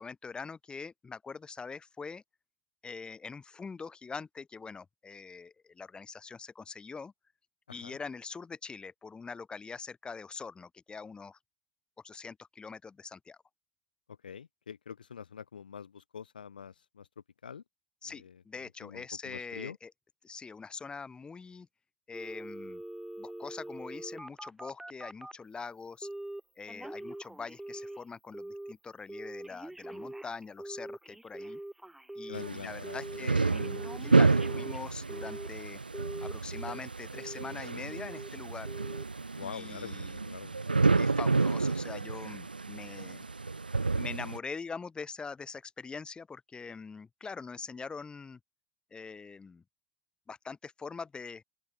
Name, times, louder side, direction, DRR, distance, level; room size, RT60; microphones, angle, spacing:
voice 1, 0.0-2.2 2.8-7.1 7.7-11.4 12.0-13.4 18.0-19.9 20.2-21.7 22.1-22.8 23.2-26.1 26.6-31.6 32.2-35.8 36.2-38.7 39.4-40.2 40.9-43.3 44.0-48.4 48.9-49.6 50.3-51.4, left 5 dB, 20° left, 5.2 m, -43 dB
voice 2, 7.7-8.0 14.1-17.1 17.4-17.6 18.1-19.8 32.3-33.5 39.4-40.6, left 7 dB, 75° left, 1.6 m, -45 dB
Telephone, 22.1-25.4 26.0-26.4 26.7-28.0 28.3-28.7 29.1-32.5 32.8-33.2 33.5-35.6 35.9-36.8 37.2-37.5 37.9-38.3 38.7-39.0 39.4-39.5, right 1 dB, 5° right, 3.7 m, -43 dB
sound 1, 32.3-44.4, right 3 dB, 85° right, 0.4 m, -30 dB
open air
figure-of-eight pair, 75°, 5 cm